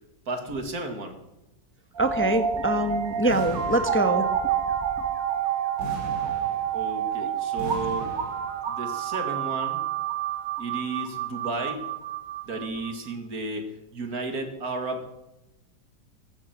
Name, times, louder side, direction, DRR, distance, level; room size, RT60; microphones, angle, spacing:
voice 1, 0.3-1.2 6.7-8.1 8.7-9.9 10.6-11.9 12.4-15.1, right 2 dB, 55° right, 6 dB, 2.5 m, -33 dB
sound 1, 1.9-12.9, right 9 dB, 85° right, 2.1 m, -29 dB
voice 2, 2.0-4.5, right 1 dB, 10° left, 8 dB, 0.9 m, -24 dB
sound 2, 3.3-4.5 5.8-7.1 7.6-8.7, right 1 dB, 70° right, 4.8 m, -39 dB
14.5 x 14.5 x 6.0 m, 0.94 s
omnidirectional pair, 1.9 m